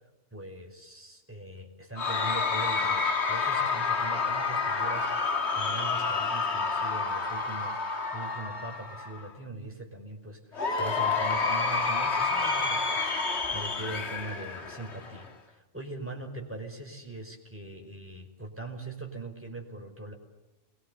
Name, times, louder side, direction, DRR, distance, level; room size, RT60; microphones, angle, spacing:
voice 1, 0.3-7.8 8.1-13.1 13.5-20.1, right 2 dB, 10° right, 2 dB, 5.4 m, -41 dB
Cheering / Crowd, 2.0-9.3 10.5-15.3, left 4 dB, 55° left, 2.0 m, -29 dB
29.5 x 23.0 x 8.3 m, 1.1 s
omnidirectional pair, 1.3 m